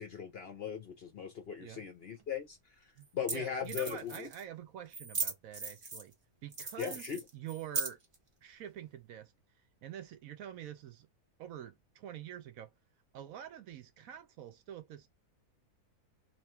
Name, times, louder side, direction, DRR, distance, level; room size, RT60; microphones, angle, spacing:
voice 1, 0.0-2.6 3.1-4.3 6.8-7.2, left 8 dB, 55° left, 0.7 m, -38 dB
sound 1, 2.2-2.3 3.0-3.1 3.3-3.4 3.6-4.4 4.9-6.1 6.5-8.2, right 4 dB, 30° right, 0.5 m, -38 dB
voice 2, 3.3-6.1 6.4-8.0 8.4-9.3 9.8-11.1 11.4-12.7 13.1-15.1, right 10 dB, 70° right, 1.0 m, -46 dB
2.9 x 2.4 x 4.2 m
omnidirectional pair, 1.6 m